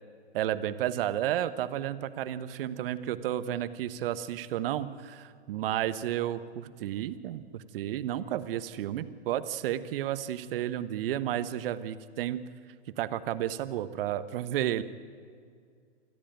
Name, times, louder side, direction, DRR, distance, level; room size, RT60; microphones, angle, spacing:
voice 1, 0.3-12.4 13.0-14.8, right 12 dB, 50° right, 13 dB, 1.2 m, -32 dB
28.0 x 13.5 x 9.1 m, 2.2 s
hypercardioid pair, 130°, 35 cm